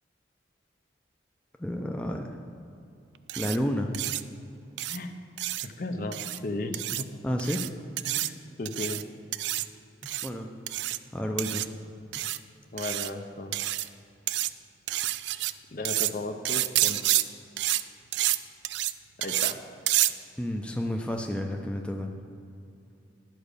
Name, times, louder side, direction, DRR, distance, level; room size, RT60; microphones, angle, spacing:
voice 1, 1.6-2.4 3.4-3.9 7.2-7.7 10.2-10.5 11.1-11.7 15.3-15.5 20.4-22.1, equal, 5° left, 2 dB, 0.5 m, -30 dB
sound 1, 3.3-3.6 3.9-4.2 4.8-5.0 5.4-5.7 6.1-6.4 6.7-7.0 7.4-7.7 8.0-8.3 8.7-9.0 9.3-9.7 10.0-10.3 10.7-11.0 11.4-11.7 12.1-12.4 12.8-13.1 13.5-13.9 14.3-14.5 14.9-15.5 15.9-16.1 16.5-17.2 17.6-17.8 18.1-18.4 18.6-18.9 19.2-19.5 19.9-20.1, right 15 dB, 75° right, 0.3 m, -28 dB
voice 2, 5.6-6.2 6.4-7.1 8.1-9.0 12.7-13.6 15.7-17.1 19.2-19.6, left 2 dB, 50° left, 6 dB, 0.6 m, -35 dB
11.0 x 5.0 x 6.6 m, 2.5 s
head